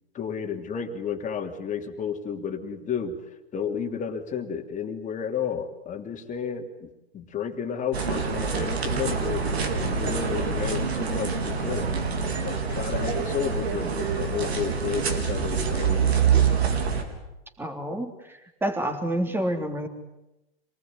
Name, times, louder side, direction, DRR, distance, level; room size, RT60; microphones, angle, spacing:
voice 1, 0.1-9.5 9.8-11.9 12.4-16.2, left 7 dB, 25° left, 5 dB, 3.1 m, -32 dB
sound 1, 7.9-17.0, right 6 dB, 85° right, 4.3 m, -26 dB
voice 2, 17.6-19.9, right 1 dB, 5° right, 5 dB, 3.5 m, -29 dB
27.0 x 19.0 x 9.8 m, 0.91 s
hypercardioid pair, 115°, 31 cm